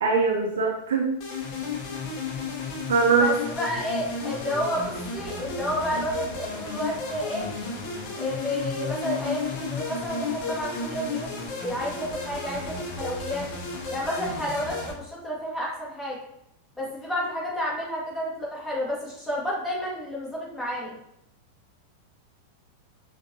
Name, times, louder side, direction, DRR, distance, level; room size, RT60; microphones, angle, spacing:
voice 1, 0.0-1.1 2.9-3.3, right 4 dB, 65° right, 1 dB, 0.6 m, -22 dB
sound 1, 1.2-14.9, left 4 dB, 40° left, 0.9 m, -33 dB
voice 2, 3.2-7.5 8.1-13.5 13.9-16.2 16.8-21.0, equal, 5° left, -6 dB, 1.7 m, -31 dB
6.3 x 2.6 x 2.8 m, 0.79 s
figure-of-eight pair, 90°, 0 cm